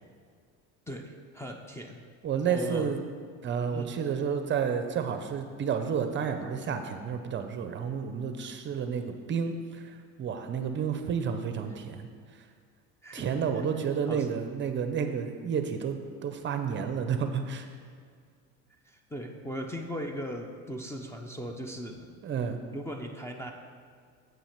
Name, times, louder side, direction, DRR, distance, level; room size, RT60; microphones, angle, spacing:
voice 1, 0.9-2.0 2.5-3.0 3.7-3.9 8.4-8.5 13.0-13.8 14.1-14.3 18.9-22.1 22.7-23.5, equal, 10° left, 3 dB, 0.6 m, -38 dB
voice 2, 2.2-3.0 3.4-12.1 13.1-17.7 22.2-22.6, right 7 dB, 35° right, 7 dB, 0.6 m, -31 dB
7.4 x 5.8 x 5.8 m, 2.1 s
cardioid pair, 120°, 34 cm